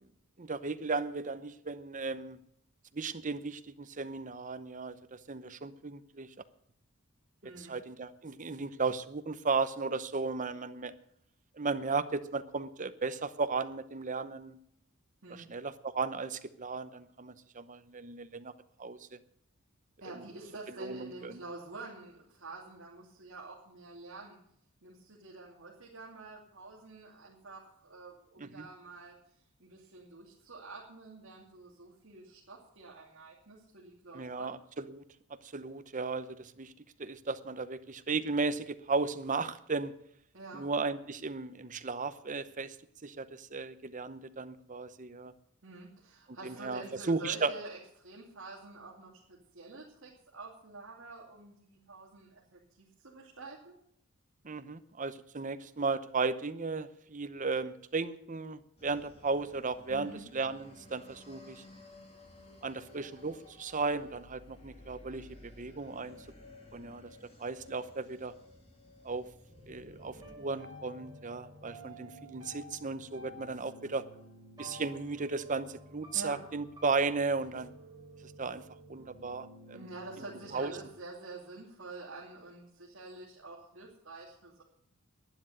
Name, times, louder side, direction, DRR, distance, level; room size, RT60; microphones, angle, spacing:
voice 1, 0.4-2.4 2.9-6.3 7.4-10.9 11.6-14.6 15.3-18.5 18.8-19.2 20.8-21.4 28.4-28.7 34.1-35.0 35.4-36.7 37.0-39.9 40.5-42.8 43.0-45.3 46.4-46.8 47.1-47.5 54.4-61.6 62.6-66.3 66.7-68.3 69.0-69.3 69.7-74.0 74.6-77.7 78.4-78.6 78.9-79.9 80.5-80.7, right 4 dB, 35° right, 11 dB, 0.8 m, -35 dB
voice 2, 7.4-7.7 15.2-15.5 20.0-24.4 24.8-29.1 29.6-34.5 40.3-40.7 45.6-53.7 59.9-60.2 76.1-76.4 79.7-84.6, right 3 dB, 60° right, -4 dB, 2.6 m, -48 dB
sound 1, 58.8-70.4, left 1 dB, 25° left, 2.8 m, -55 dB
sound 2, 69.5-80.9, equal, 20° right, 4.3 m, -52 dB
12.0 x 9.8 x 7.8 m, 0.72 s
head